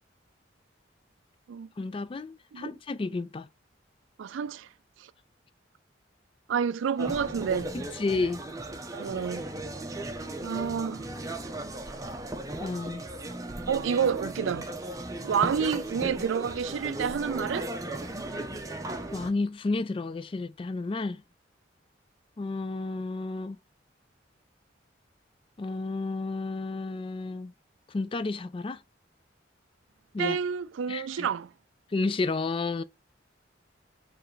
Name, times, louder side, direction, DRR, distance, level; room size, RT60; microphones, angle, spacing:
voice 1, 1.8-3.5 7.7-8.4 12.6-13.0 19.1-21.2 22.4-23.6 25.6-27.5 27.9-28.8 30.1-30.4 30.9-31.3 31.9-32.8, left 3 dB, 30° left, 0.3 m, -31 dB
voice 2, 4.2-4.7 6.5-7.7 8.9-9.5 10.4-11.1 13.7-14.7 15.2-17.7 30.2-31.5, right 7 dB, 85° right, 0.3 m, -29 dB
sound 1, 7.0-19.3, right 1 dB, 20° right, 0.6 m, -36 dB
4.6 x 3.2 x 3.1 m
head